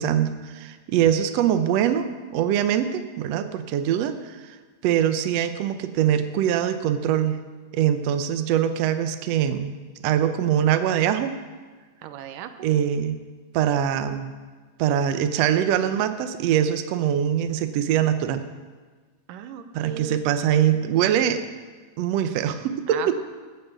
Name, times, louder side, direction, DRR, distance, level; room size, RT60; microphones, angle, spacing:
voice 1, 0.0-2.1 2.3-4.6 4.8-7.4 7.7-9.7 10.0-11.3 12.6-13.2 13.5-14.3 14.8-18.4 19.7-21.4 22.0-23.1, right 10 dB, 70° right, 9 dB, 1.7 m, -23 dB
voice 2, 12.0-12.7 19.3-20.2 22.9-23.1, right 10 dB, 90° right, 9 dB, 2.5 m, -36 dB
14.5 x 8.0 x 8.1 m, 1.4 s
omnidirectional pair, 3.7 m